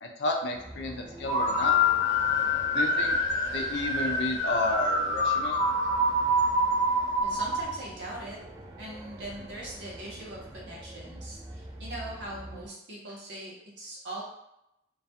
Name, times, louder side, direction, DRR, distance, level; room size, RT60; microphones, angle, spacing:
voice 1, 0.0-1.7 2.7-3.1 3.5-5.6, left 2 dB, 70° left, 2 dB, 0.4 m, -31 dB
sound 1, 0.5-12.7, right 1 dB, 20° right, 0.3 m, -45 dB
sound 2, 1.2-7.7, left 1 dB, 30° left, 0.7 m, -26 dB
voice 2, 7.2-8.4 8.8-14.2, right 1 dB, 70° right, -4 dB, 0.8 m, -41 dB
2.3 x 2.2 x 2.7 m, 0.84 s
head